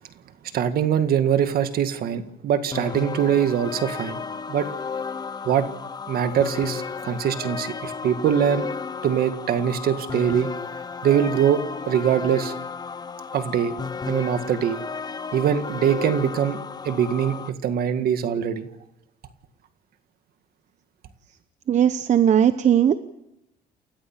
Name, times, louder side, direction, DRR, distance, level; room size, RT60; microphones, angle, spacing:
voice 1, 0.5-4.2 4.5-4.7 5.5-5.7 6.1-8.7 9.0-10.5 11.0-12.5 13.3-13.7 14.1-14.8 15.3-16.6 16.8-18.7, right 9 dB, 65° right, 9 dB, 1.9 m, -23 dB
sound 1, 2.7-17.5, left 5 dB, 25° left, 0.9 m, -33 dB
voice 2, 21.7-23.0, right 9 dB, 45° right, 11 dB, 0.9 m, -18 dB
29.0 x 14.0 x 7.4 m, 0.87 s
cardioid pair, 110°, 17 cm